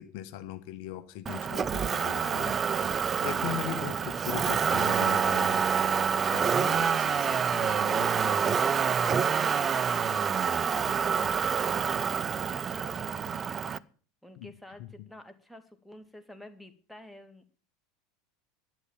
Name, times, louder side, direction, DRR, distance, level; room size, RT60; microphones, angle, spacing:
voice 1, 0.0-2.8 3.2-5.9 6.3-8.4 14.4-14.5 14.8-14.9, left 12 dB, 55° left, 10 dB, 1.1 m, -39 dB
Motor vehicle (road), 1.3-13.8, right 7 dB, 25° right, 0.6 m, -27 dB
voice 2, 4.0-4.5 7.9-13.6 14.2-17.5, equal, ahead, 7 dB, 1.9 m, -49 dB
11.5 x 9.3 x 7.2 m, 0.41 s
figure-of-eight pair, 80°, 0 cm